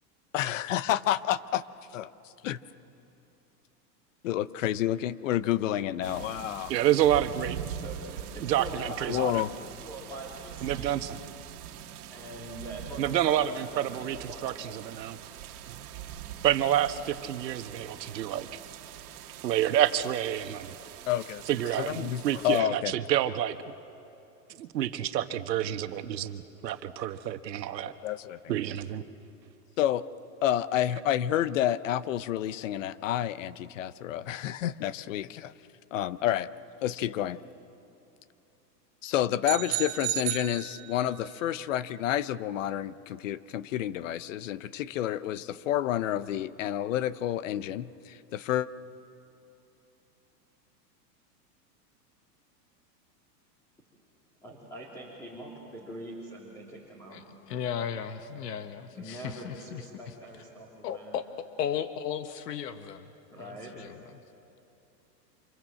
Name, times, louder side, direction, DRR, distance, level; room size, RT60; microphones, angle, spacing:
voice 1, 0.3-1.6 1.9-2.0 2.4-2.6 4.2-6.7 8.8-9.5 21.1-21.4 21.8-23.0 28.0-28.4 29.8-30.0 30.4-35.5 35.9-36.5 36.8-37.4 39.0-48.7, left 12 dB, 50° left, 16 dB, 0.8 m, -29 dB
sound 1, 6.0-22.6, right 10 dB, 65° right, 1.8 m, -43 dB
voice 2, 6.7-7.8 8.4-9.4 10.6-11.2 13.0-15.2 15.7-15.8 16.4-18.5 19.4-20.7 21.5-23.6 24.6-27.9 28.5-29.0, right 11 dB, 80° right, 9 dB, 1.5 m, -28 dB
voice 3, 7.7-9.2 9.8-10.9 12.0-14.5 54.4-57.2 58.9-61.1 63.3-63.8, right 1 dB, 5° left, -5 dB, 3.0 m, -43 dB
sound 2, 39.4-41.3, right 19 dB, 40° right, 0.7 m, -33 dB
voice 4, 57.1-60.1 60.8-63.1 63.3-64.0, left 8 dB, 70° left, 9 dB, 1.4 m, -36 dB
29.0 x 27.0 x 7.6 m, 2.8 s
supercardioid pair, 165°, 50 cm